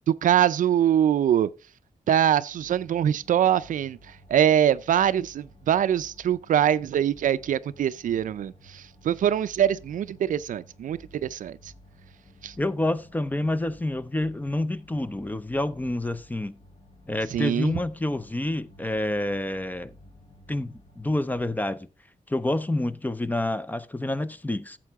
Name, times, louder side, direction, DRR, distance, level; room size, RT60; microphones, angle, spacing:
voice 1, 0.2-1.5 2.1-4.0 4.3-11.6 12.4-12.5 17.3-17.8, right 10 dB, 80° right, 0.4 m, -23 dB
sound 1, 2.5-21.6, left 1 dB, 45° left, 2.6 m, -53 dB
voice 2, 12.6-16.6 17.1-19.9 20.5-21.9 22.3-24.8, left 1 dB, 15° left, 0.6 m, -28 dB
11.0 x 7.5 x 3.5 m
cardioid pair, 95°, 13 cm